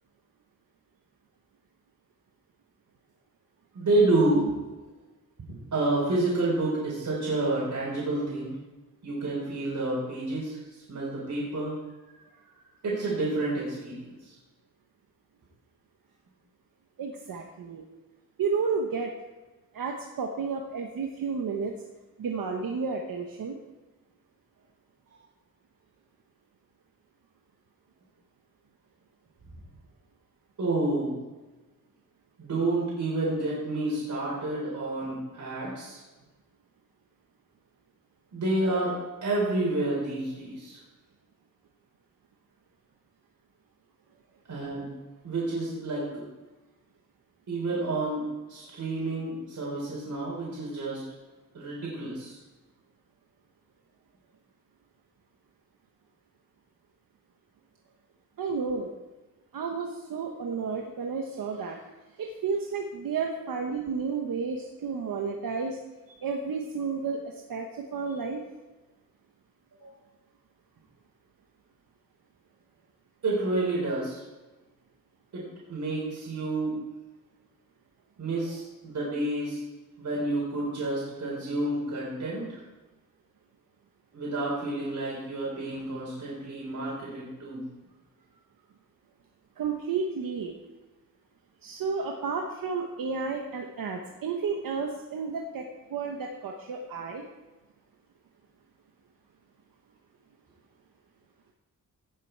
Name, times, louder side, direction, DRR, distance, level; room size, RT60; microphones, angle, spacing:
voice 1, 3.7-4.5 5.7-8.5 9.0-10.6 10.9-11.7 12.8-14.1 30.6-31.2 32.4-36.0 38.3-39.0 39.2-40.8 44.5-44.9 45.2-46.2 47.5-48.2 48.5-51.0 51.5-52.4 69.8-69.9 73.2-74.2 75.3-76.8 78.2-79.6 80.0-82.6 84.1-87.7, right 2 dB, 60° right, -6 dB, 4.2 m, -29 dB
voice 2, 17.0-17.8 18.4-19.1 19.7-21.7 22.2-23.6 58.4-58.9 59.5-61.8 62.2-65.8 66.2-68.4 89.6-90.5 91.6-95.6 95.9-97.2, right 5 dB, 90° right, 2 dB, 1.2 m, -32 dB
17.0 x 7.5 x 4.6 m, 1.1 s
wide cardioid pair, 115°, 33 cm